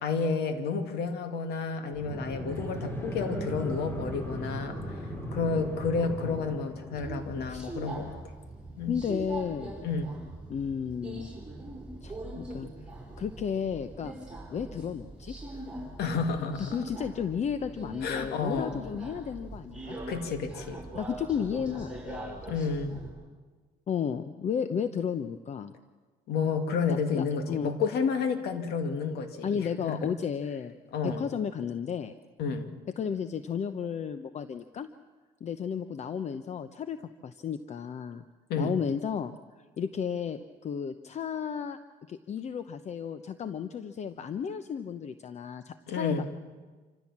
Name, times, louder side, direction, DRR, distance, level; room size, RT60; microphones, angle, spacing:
voice 1, 0.0-8.2 8.8-8.9 9.8-10.1 16.0-16.8 18.0-18.8 20.1-20.8 22.5-23.0 26.3-30.1 30.9-31.2 32.4-32.7 38.5-38.8 45.9-46.2, left 5 dB, 75° left, 7 dB, 2.4 m, -31 dB
sound 1, 2.0-7.2, right 1 dB, 15° left, 3.9 m, -37 dB
Subway metro underground, 6.9-23.1, right 2 dB, 5° right, 6.7 m, -42 dB
voice 2, 8.9-9.8 10.5-11.3 12.0-12.7 13.2-14.1 14.5-15.7 16.4-20.0 20.9-22.4 23.9-25.7 26.9-27.7 29.4-30.8 31.0-32.1 33.0-34.9 35.4-38.2 38.6-39.3 39.8-41.8 42.1-46.1, left 7 dB, 40° left, 11 dB, 0.8 m, -33 dB
27.0 x 15.0 x 7.4 m, 1.4 s
cardioid pair, 110°, 17 cm